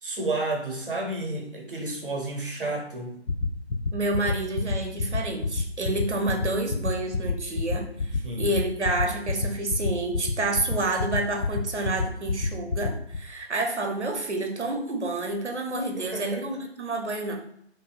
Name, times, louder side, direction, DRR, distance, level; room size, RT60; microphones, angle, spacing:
voice 1, 0.0-3.2 8.2-8.5 16.0-16.4, right 2 dB, 50° right, 1 dB, 0.8 m, -31 dB
sound 1, 3.3-13.2, left 4 dB, 85° left, 0.5 m, -26 dB
voice 2, 3.9-17.4, right 2 dB, 80° right, 2 dB, 0.8 m, -29 dB
2.7 x 2.5 x 2.4 m, 0.71 s
figure-of-eight pair, 150°, 34 cm